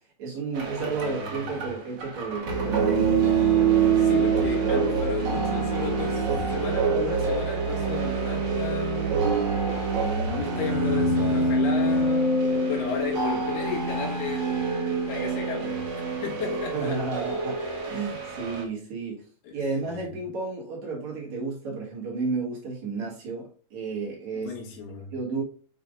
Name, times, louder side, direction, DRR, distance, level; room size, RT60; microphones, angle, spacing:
voice 1, 0.2-3.1 16.7-17.6 17.8-19.3 19.5-24.5 25.1-25.4, right 4 dB, 55° right, 2.6 m, -32 dB
sound 1, 0.5-18.6, right 4 dB, 80° right, 1.0 m, -25 dB
voice 2, 0.8-1.7 4.0-9.3 10.3-14.5 15.1-17.0 17.9-18.0 19.4-20.1 24.4-25.1, left 5 dB, 90° left, 3.5 m, -34 dB
7.5 x 5.7 x 2.5 m
omnidirectional pair, 4.3 m